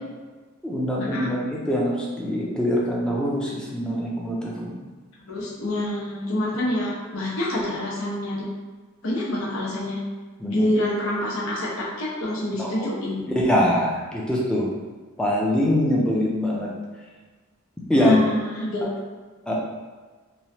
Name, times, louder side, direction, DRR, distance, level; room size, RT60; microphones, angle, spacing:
voice 1, 0.6-4.8 10.4-10.7 12.6-12.9 13.4-14.7 15.2-16.7 17.9-18.2 18.8-18.9 19.5-19.6, left 1 dB, 5° left, -4 dB, 0.4 m, -23 dB
voice 2, 5.3-8.5 9.0-10.0 10.5-13.2 17.9-18.9, left 1 dB, 85° left, -5 dB, 0.8 m, -27 dB
3.1 x 2.2 x 2.7 m, 1.3 s
head